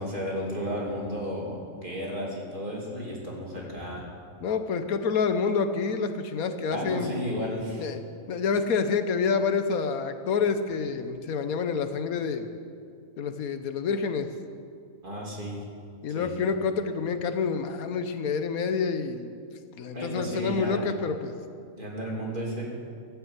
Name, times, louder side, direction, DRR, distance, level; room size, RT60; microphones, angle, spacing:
voice 1, 0.0-4.0 6.7-7.8 15.0-15.6 16.1-16.3 19.9-20.8 21.8-22.7, equal, 35° right, -3 dB, 3.1 m, -33 dB
voice 2, 4.4-7.1 7.8-8.0 8.3-12.5 13.2-14.3 16.0-19.3 19.8-21.3, left 5 dB, 85° left, 9 dB, 1.4 m, -28 dB
15.0 x 9.7 x 8.1 m, 2.3 s
omnidirectional pair, 1.5 m